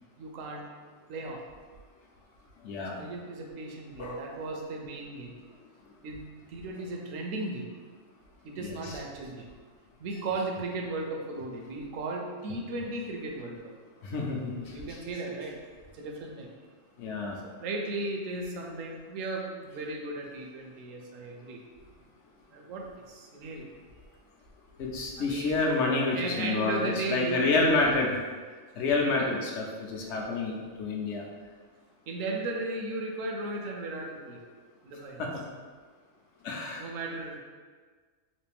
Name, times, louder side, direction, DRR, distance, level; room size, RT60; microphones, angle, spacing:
voice 1, 0.2-0.7 1.1-1.4 3.0-5.3 6.0-7.7 8.4-9.5 10.0-13.6 14.7-15.6 15.9-16.5 17.4-21.6 22.5-23.7 25.2-25.6 26.1-28.2 29.0-29.3 32.1-34.4 34.8-35.2 36.8-37.4, right 2 dB, 75° right, 1 dB, 1.0 m, -36 dB
voice 2, 2.6-3.0 4.0-4.3 8.6-9.0 14.0-14.7 17.0-17.4 24.8-28.2 28.8-31.2 35.2-35.3 36.4-36.9, left 3 dB, 65° left, -1 dB, 0.8 m, -29 dB
3.2 x 2.6 x 3.3 m, 1.5 s
omnidirectional pair, 1.4 m